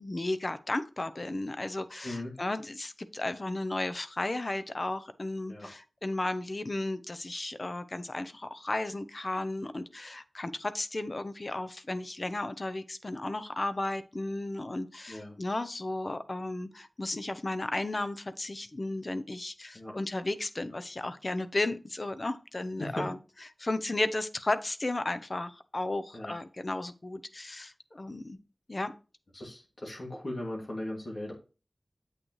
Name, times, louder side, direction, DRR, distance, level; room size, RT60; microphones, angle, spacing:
voice 1, 0.0-23.2 23.6-28.4 28.7-28.9, left 2 dB, 45° left, 12 dB, 0.6 m, -34 dB
voice 2, 2.0-2.4 5.5-5.7 15.1-15.4 19.7-19.9 22.8-23.1 26.1-26.4 29.3-31.3, left 1 dB, 60° left, -1 dB, 2.3 m, -38 dB
8.0 x 6.2 x 3.1 m, 0.33 s
wide cardioid pair, 60°, 0 cm